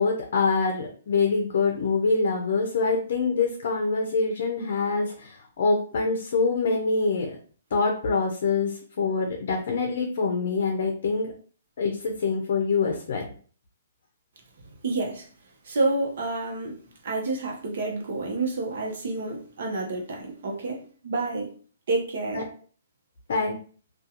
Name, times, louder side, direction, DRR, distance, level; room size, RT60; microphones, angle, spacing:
voice 1, 0.0-7.4 7.7-11.3 11.8-13.3 22.3-22.4 23.3-23.6, left 4 dB, 60° left, 2 dB, 0.5 m, -25 dB
voice 2, 14.8-15.3 15.6-21.5 21.9-22.4, right 2 dB, 65° right, 0 dB, 0.8 m, -29 dB
2.3 x 2.3 x 2.8 m, 0.42 s
hypercardioid pair, 150°, 0 cm